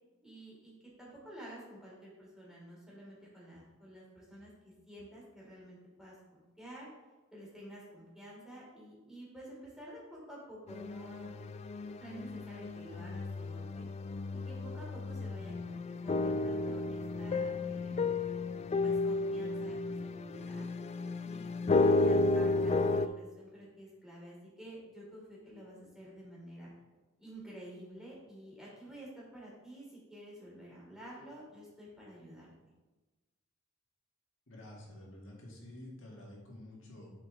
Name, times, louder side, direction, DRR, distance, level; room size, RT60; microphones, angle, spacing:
voice 1, 0.2-6.9 7.3-11.3 12.0-13.8 14.3-18.1 18.8-20.7 21.2-26.7 27.2-32.5, right 1 dB, 5° right, -6 dB, 2.9 m, -50 dB
sound 1, 10.7-23.1, left 3 dB, 35° left, 0.3 m, -32 dB
voice 2, 34.5-37.1, left 1 dB, 70° left, -3 dB, 1.9 m, -50 dB
10.5 x 5.0 x 3.7 m, 1.2 s
head